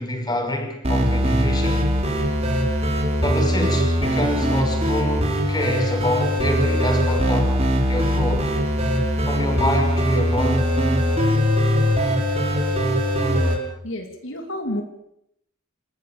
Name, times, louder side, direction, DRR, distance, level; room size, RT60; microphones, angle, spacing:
voice 1, 0.0-1.9 2.2-2.3 3.2-8.6 9.3-10.7, left 1 dB, 20° left, 3 dB, 5.7 m, -27 dB
sound 1, 0.8-13.6, equal, 30° right, 5.0 m, -21 dB
voice 2, 13.8-14.8, left 1 dB, 70° left, 4 dB, 2.9 m, -29 dB
27.5 x 14.0 x 8.8 m, 0.76 s
head